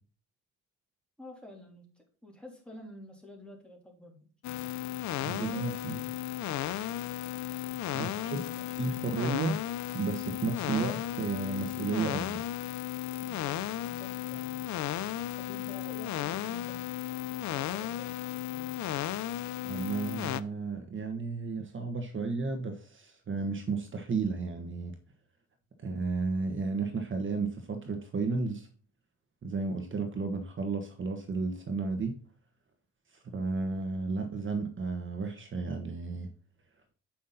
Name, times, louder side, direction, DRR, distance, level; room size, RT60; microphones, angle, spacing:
voice 1, 1.2-4.2 8.0-8.7 13.2-14.6 15.4-16.9, left 1 dB, 5° left, 0 dB, 3.4 m, -50 dB
sound 1, 4.4-20.4, left 12 dB, 65° left, 0.6 m, -35 dB
voice 2, 5.2-6.0 7.9-8.4 8.8-9.6 9.9-12.4 19.6-25.0 25.8-28.7 29.4-32.2 33.3-36.3, right 4 dB, 40° right, 6 dB, 1.3 m, -33 dB
8.5 x 5.8 x 4.1 m, 0.40 s
cardioid pair, 90°, 30 cm